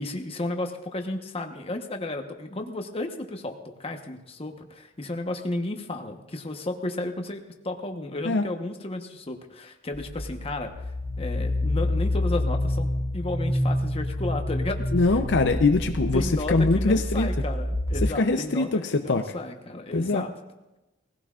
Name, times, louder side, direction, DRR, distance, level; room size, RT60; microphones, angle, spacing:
voice 1, 0.0-10.7 11.2-14.8 16.1-20.3, left 2 dB, 30° left, 4 dB, 1.1 m, -33 dB
sound 1, 9.9-18.0, left 1 dB, 15° right, 2.4 m, -27 dB
voice 2, 14.9-17.3 18.0-19.2 19.9-20.2, left 3 dB, 65° left, 6 dB, 0.6 m, -23 dB
20.0 x 16.0 x 2.5 m, 1.0 s
head